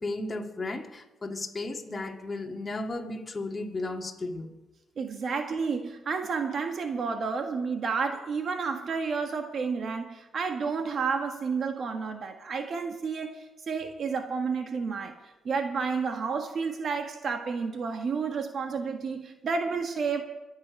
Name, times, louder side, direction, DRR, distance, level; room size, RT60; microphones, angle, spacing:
voice 1, 0.0-4.5, left 2 dB, 25° left, 2 dB, 2.1 m, -34 dB
voice 2, 5.0-15.1 15.4-20.2, right 5 dB, 50° right, 5 dB, 1.4 m, -31 dB
24.0 x 8.9 x 5.3 m, 1.1 s
cardioid pair, 90°, 0 cm